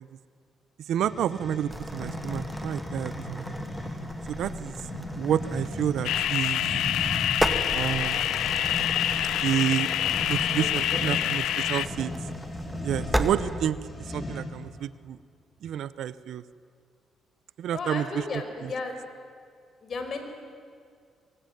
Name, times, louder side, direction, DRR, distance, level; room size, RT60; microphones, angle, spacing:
sound 1, 0.9-14.7, left 1 dB, 25° left, 4.9 m, -36 dB
voice 1, 0.9-3.5 4.3-4.7 5.1-6.6 7.7-8.3 9.4-9.9 10.3-12.1 12.8-13.8 14.1-15.2 15.6-16.4 17.6-18.4, right 10 dB, 75° right, 16 dB, 0.8 m, -29 dB
sound 2, 1.7-13.3, right 1 dB, 5° right, 2.0 m, -36 dB
sound 3, 6.0-11.9, left 12 dB, 85° left, 0.6 m, -26 dB
voice 2, 10.5-11.0 17.7-19.0 19.8-20.2, left 4 dB, 50° left, 6 dB, 5.2 m, -34 dB
24.0 x 24.0 x 9.4 m, 2.2 s
cardioid pair, 90°, 0 cm